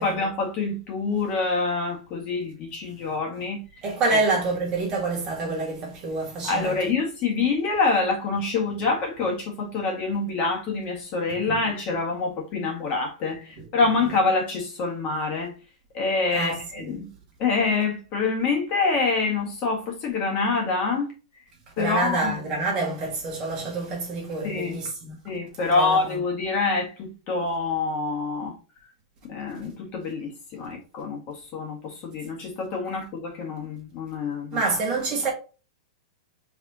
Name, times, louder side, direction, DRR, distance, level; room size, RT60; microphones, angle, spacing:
voice 1, 0.0-3.6 4.1-4.2 6.4-15.5 15.9-17.1 17.4-21.1 21.8-22.4 24.4-24.8 25.2-28.5 29.2-34.6, left 4 dB, 30° left, 1.6 m, -26 dB
voice 2, 3.8-6.8 11.5-11.6 13.6-13.7 16.3-17.0 21.8-25.2 25.7-26.2 34.5-35.3, right 3 dB, 25° right, 1.8 m, -27 dB
4.9 x 3.5 x 2.8 m
supercardioid pair, 155°, 3 cm